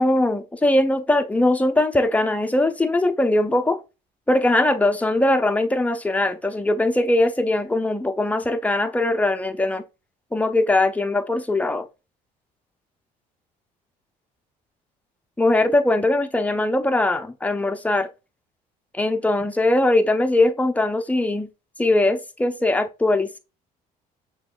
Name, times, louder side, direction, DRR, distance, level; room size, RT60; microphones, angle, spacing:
voice 1, 0.0-3.8 4.3-9.8 10.3-11.8 15.4-18.1 18.9-21.5 21.8-23.4, left 2 dB, 5° left, 0.6 m, -21 dB
6.1 x 3.0 x 2.4 m
hypercardioid pair, 60°, 20 cm